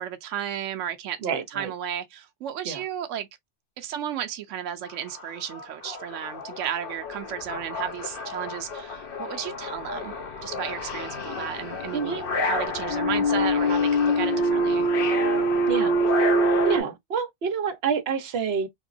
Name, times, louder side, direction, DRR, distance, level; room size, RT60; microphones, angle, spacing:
voice 1, 0.0-3.3 3.8-10.1 10.4-14.9, right 9 dB, 90° right, 0.9 m, -34 dB
voice 2, 1.2-1.7 2.6-2.8 11.9-12.3 15.7-15.9 16.7-18.7, right 6 dB, 60° right, 1.1 m, -28 dB
sound 1, 4.9-5.0 5.3-16.8, equal, 50° left, 1.0 m, -26 dB
3.6 x 2.9 x 2.6 m
omnidirectional pair, 1.2 m